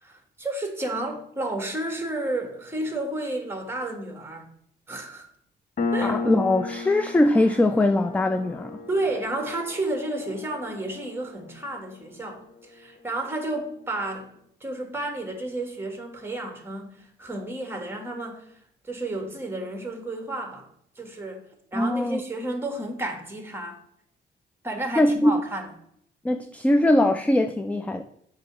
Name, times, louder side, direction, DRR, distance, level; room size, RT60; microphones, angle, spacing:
voice 1, 0.0-4.5 4.9-5.3 5.9-6.2 8.9-14.3 14.6-18.4 18.8-20.7 20.9-23.8 24.6-25.7, right 2 dB, 10° right, 4 dB, 1.5 m, -31 dB
Piano, 5.8-12.9, left 3 dB, 45° left, 0.8 m, -34 dB
voice 2, 6.0-8.8 21.7-22.2 25.0-25.3 26.2-28.0, left 1 dB, 5° left, 8 dB, 0.4 m, -21 dB
7.5 x 2.9 x 5.9 m, 0.69 s
cardioid pair, 90°, 20 cm